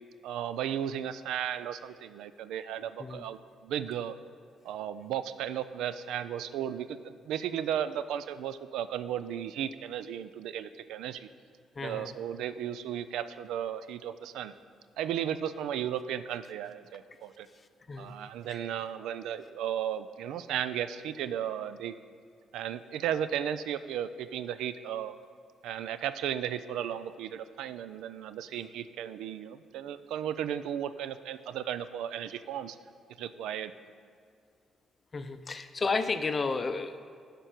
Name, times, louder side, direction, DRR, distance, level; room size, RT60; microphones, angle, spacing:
voice 1, 0.2-4.2 4.6-11.3 11.8-14.5 15.0-17.5 18.0-21.9 22.5-25.2 25.6-32.8 33.2-33.7, right 10 dB, 90° right, 13 dB, 0.3 m, -35 dB
voice 2, 11.8-12.1 17.6-18.1 18.5-18.7 35.1-37.0, left 4 dB, 35° left, 9 dB, 0.5 m, -33 dB
12.0 x 5.2 x 4.4 m, 2.2 s
cardioid pair, 90°, 0 cm